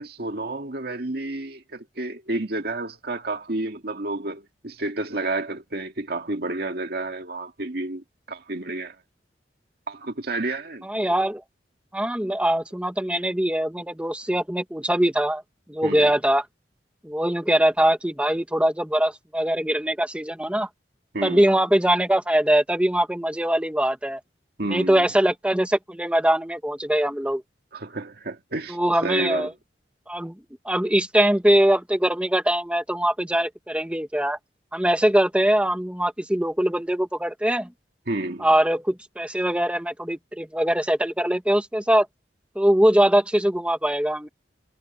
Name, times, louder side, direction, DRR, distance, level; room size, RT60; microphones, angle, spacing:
voice 1, 0.0-9.0 9.9-10.9 15.8-16.1 21.1-21.5 24.6-25.1 27.7-29.5 38.1-38.5, right 2 dB, 60° right, 2.2 m, -30 dB
voice 2, 10.8-11.4 11.9-15.4 15.7-16.4 17.0-20.7 21.2-24.2 24.7-27.4 28.7-29.5 30.1-30.3 30.7-34.4 34.7-37.7 38.4-42.1 42.6-44.3, right 1 dB, 5° right, 1.6 m, -22 dB
head